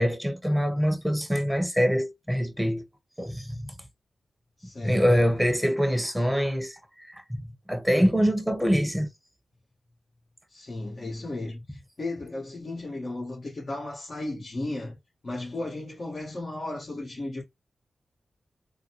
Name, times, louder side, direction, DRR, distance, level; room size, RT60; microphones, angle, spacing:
voice 1, 0.0-2.9 3.2-3.7 4.8-6.8 7.1-9.1, equal, ahead, 1.0 m, -24 dB
voice 2, 4.6-5.0 10.5-15.0 15.2-17.4, left 2 dB, 50° left, 1.6 m, -35 dB
3.9 x 2.2 x 2.9 m
supercardioid pair, 40°, 0 cm